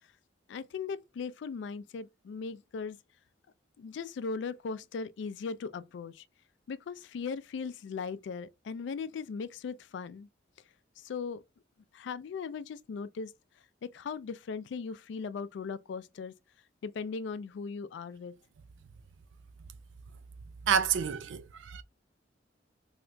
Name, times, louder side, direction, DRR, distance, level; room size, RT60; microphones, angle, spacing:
voice 1, 0.5-3.0 3.8-6.2 6.7-10.3 11.0-11.4 11.9-13.3 13.8-16.3 16.8-18.3, left 5 dB, 65° left, 0.3 m, -38 dB
voice 2, 20.7-21.8, right 7 dB, 80° right, 0.4 m, -29 dB
3.3 x 2.8 x 2.5 m
head